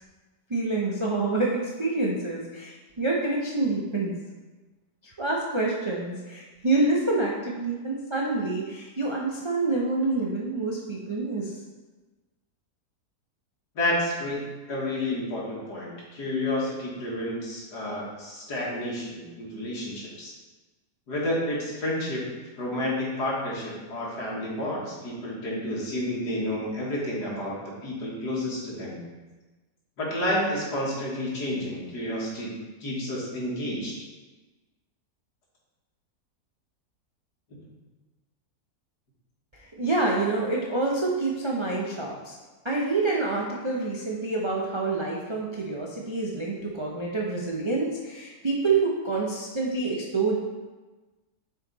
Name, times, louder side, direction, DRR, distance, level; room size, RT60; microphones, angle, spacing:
voice 1, 0.5-4.2 5.0-11.5 39.5-42.4 42.6-50.4, right 3 dB, 45° right, -3 dB, 0.3 m, -27 dB
voice 2, 13.8-20.3 21.1-22.2 22.6-29.0 30.0-32.5 32.8-33.9, left 1 dB, 75° left, -5 dB, 2.2 m, -30 dB
6.6 x 4.7 x 4.0 m, 1.2 s
omnidirectional pair, 1.7 m